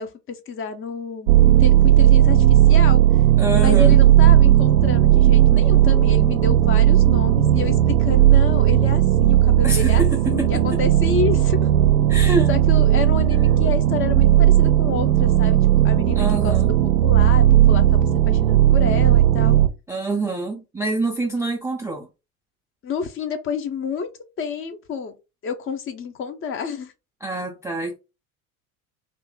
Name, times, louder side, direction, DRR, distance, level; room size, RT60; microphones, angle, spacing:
voice 1, 0.0-3.0 3.6-11.7 12.2-15.6 15.8-16.8 17.0-19.6 22.8-24.1 24.4-25.1 25.4-26.9, left 6 dB, 30° left, 0.6 m, -29 dB
sound 1, 1.3-19.7, right 12 dB, 65° right, 0.5 m, -15 dB
voice 2, 3.4-4.0 9.6-10.5 12.1-12.5 16.2-16.7 19.9-22.1 27.2-28.0, right 2 dB, 5° right, 0.4 m, -26 dB
2.7 x 2.5 x 3.7 m
figure-of-eight pair, 70°, 43 cm